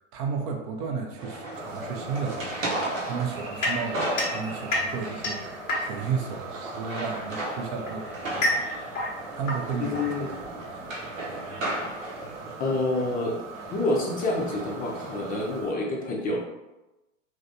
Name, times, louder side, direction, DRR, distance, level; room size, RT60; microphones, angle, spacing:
voice 1, 0.0-10.3 10.5-12.1, right 6 dB, 40° right, 2 dB, 0.5 m, -34 dB
sound 1, 1.2-15.6, right 1 dB, 85° right, 0.9 m, -36 dB
sound 2, 1.5-15.7, right 3 dB, 60° right, 0.9 m, -43 dB
sound 3, 3.6-6.2 7.2-10.6, left 1 dB, 80° left, 0.9 m, -30 dB
voice 2, 9.8-10.3 12.6-13.3 13.7-16.4, left 2 dB, 20° left, -2 dB, 0.5 m, -27 dB
3.2 x 2.6 x 2.7 m, 1.0 s
hypercardioid pair, 95°, 38 cm